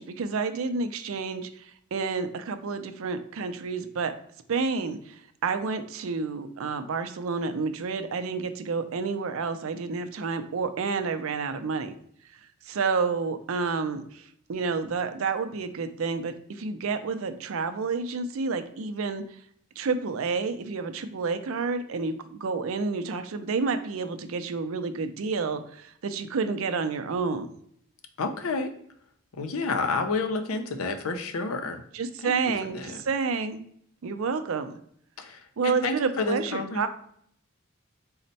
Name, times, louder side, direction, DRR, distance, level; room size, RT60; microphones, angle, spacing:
voice 1, 0.0-4.1 4.5-12.0 12.6-19.2 19.8-27.5 31.9-33.6 34.0-34.7 35.6-36.9, right 4 dB, 70° right, 9 dB, 0.4 m, -29 dB
voice 2, 28.2-28.7 29.3-31.8 32.2-33.0 35.2-36.9, left 3 dB, 80° left, 7 dB, 0.5 m, -30 dB
4.2 x 2.1 x 4.0 m, 0.66 s
head